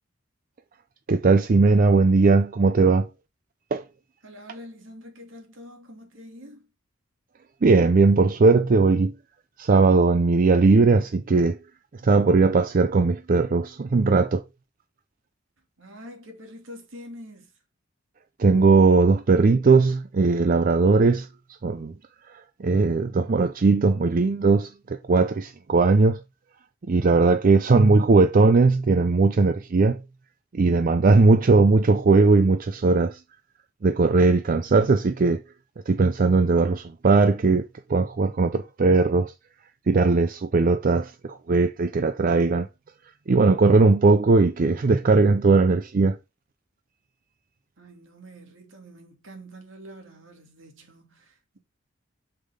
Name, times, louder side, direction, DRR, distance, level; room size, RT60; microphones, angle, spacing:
voice 1, 1.1-3.1 3.7-3.8 7.6-9.1 9.6-11.6 12.0-14.4 18.4-21.3 21.6-21.9 22.6-26.2 26.9-30.0 30.5-33.2 33.8-35.4 35.9-39.3 39.9-42.7 43.3-46.2, right 3 dB, 45° right, 0.4 m, -19 dB
voice 2, 4.2-6.7 15.8-17.5 47.8-51.6, equal, 70° right, 2.7 m, -45 dB
6.7 x 5.7 x 3.6 m
head